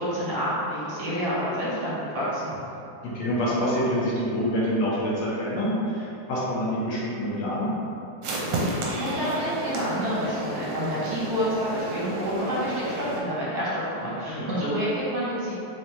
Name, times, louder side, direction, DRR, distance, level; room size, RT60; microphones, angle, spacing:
voice 1, 0.0-2.6 8.9-15.5, equal, 60° right, -10 dB, 1.4 m, -28 dB
voice 2, 3.1-7.7 14.3-14.5, equal, 70° left, -7 dB, 1.3 m, -26 dB
sound 1, 8.2-13.2, right 1 dB, 75° right, 1.3 m, -31 dB
3.6 x 3.3 x 2.8 m, 2.7 s
omnidirectional pair, 2.2 m